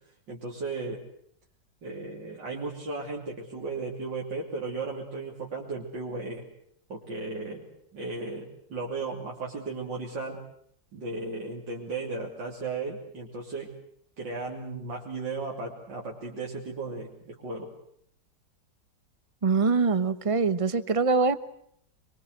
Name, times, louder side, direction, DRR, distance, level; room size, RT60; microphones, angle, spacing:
voice 1, 0.3-1.0 1.8-6.4 6.9-7.7 7.9-10.4 10.9-13.7 14.2-17.7, right 3 dB, 80° right, -2 dB, 3.7 m, -35 dB
voice 2, 19.4-21.4, right 4 dB, 25° right, 14 dB, 0.9 m, -23 dB
26.0 x 22.5 x 8.1 m, 0.67 s
omnidirectional pair, 1.9 m